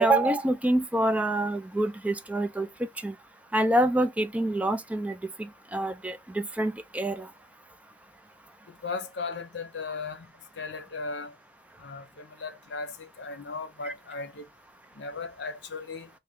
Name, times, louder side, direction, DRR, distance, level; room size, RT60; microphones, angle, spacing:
voice 1, 0.0-2.7 3.0-3.2 3.5-7.3 13.8-13.9, right 1 dB, 10° right, 0.3 m, -26 dB
voice 2, 8.8-10.3 10.6-11.3 11.8-14.5 15.0-16.1, left 4 dB, 75° left, 0.7 m, -36 dB
3.3 x 2.2 x 3.5 m
head